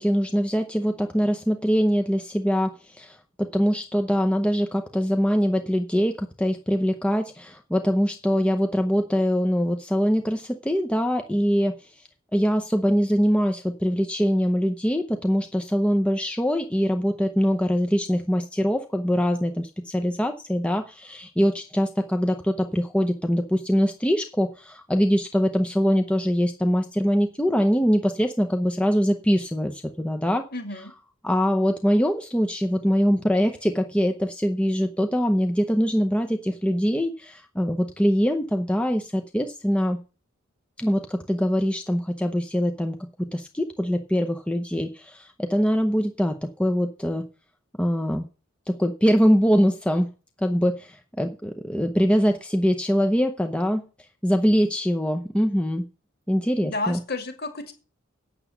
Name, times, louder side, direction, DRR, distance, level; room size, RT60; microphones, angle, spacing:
voice 1, 0.0-11.8 12.3-30.5 31.2-40.0 40.8-47.2 47.8-48.3 48.7-50.1 50.4-53.8 54.2-55.9 56.3-57.0, equal, 5° left, 5 dB, 0.7 m, -23 dB
voice 2, 30.5-30.9 56.6-57.7, left 2 dB, 45° left, 6 dB, 2.4 m, -31 dB
9.1 x 7.1 x 7.1 m, 0.34 s
head